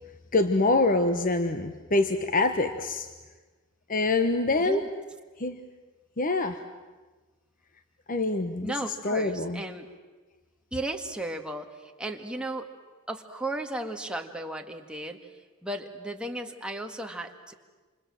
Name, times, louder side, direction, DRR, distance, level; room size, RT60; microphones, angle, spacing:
voice 1, 0.3-3.1 3.9-4.8 5.4-5.6 6.2-6.6 8.1-9.6, left 2 dB, 40° left, 8 dB, 1.1 m, -25 dB
voice 2, 8.6-9.9 10.7-12.7 13.1-15.2 15.6-17.5, right 1 dB, 5° right, 3 dB, 1.9 m, -35 dB
28.0 x 27.5 x 7.7 m, 1.3 s
head